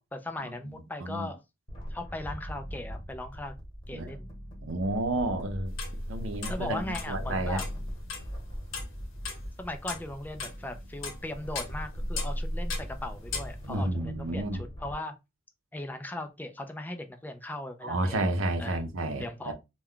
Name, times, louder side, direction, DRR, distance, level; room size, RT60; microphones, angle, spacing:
voice 1, 0.0-1.4 1.9-3.5 3.9-4.3 6.5-7.7 9.6-15.2 15.7-18.2 18.6-18.9 19.2-19.5, left 1 dB, 10° left, 0.4 m, -38 dB
voice 2, 1.0-1.3 3.9-4.1 4.6-5.7 6.1-6.8 7.1-7.6 13.7-14.6 17.8-19.5, right 2 dB, 75° right, 0.6 m, -30 dB
sound 1, 1.7-14.9, equal, 25° left, 1.0 m, -39 dB
sound 2, 5.7-6.2 6.4-7.1 7.6-8.4 8.7-9.4 9.8-11.2 11.5-12.4 12.7-12.9 13.3-13.5, left 5 dB, 75° left, 0.8 m, -38 dB
2.2 x 2.2 x 3.5 m
head